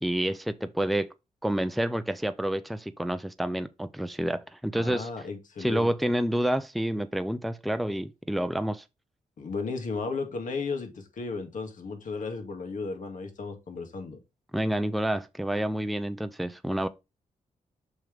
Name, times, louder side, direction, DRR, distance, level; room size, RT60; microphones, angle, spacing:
voice 1, 0.0-1.1 1.4-5.1 5.6-8.8 14.5-16.9, right 1 dB, ahead, 0.5 m, -28 dB
voice 2, 4.7-5.9 9.4-14.2, left 4 dB, 65° left, 2.3 m, -34 dB
6.2 x 5.9 x 3.4 m
wide cardioid pair, 125°, 14 cm